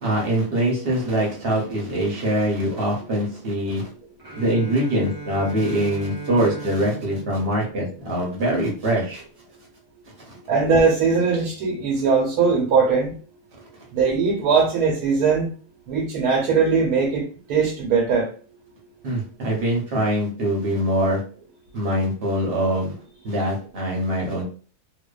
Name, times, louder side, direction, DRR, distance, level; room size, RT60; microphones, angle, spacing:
voice 1, 0.0-3.9 4.4-9.2 10.3-10.4 19.0-21.2 21.7-22.9 23.2-24.4, right 1 dB, 50° right, -2 dB, 0.8 m, -23 dB
Bowed string instrument, 4.2-8.3, right 2 dB, 30° right, 0.4 m, -38 dB
voice 2, 10.5-13.1 13.9-15.5 15.9-18.3, right 5 dB, 80° right, -2 dB, 1.2 m, -20 dB
2.6 x 2.2 x 2.2 m, 0.40 s
omnidirectional pair, 1.6 m